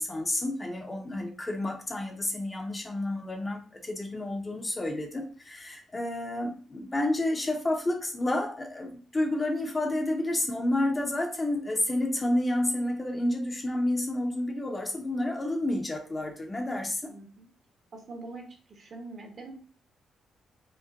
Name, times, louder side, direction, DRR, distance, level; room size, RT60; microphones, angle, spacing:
voice 1, 0.0-17.1, left 1 dB, 25° left, 3 dB, 0.7 m, -30 dB
voice 2, 17.1-17.5 17.9-19.5, right 3 dB, 50° right, 3 dB, 0.9 m, -44 dB
5.1 x 2.1 x 2.5 m, 0.41 s
cardioid pair, 110°, 0 cm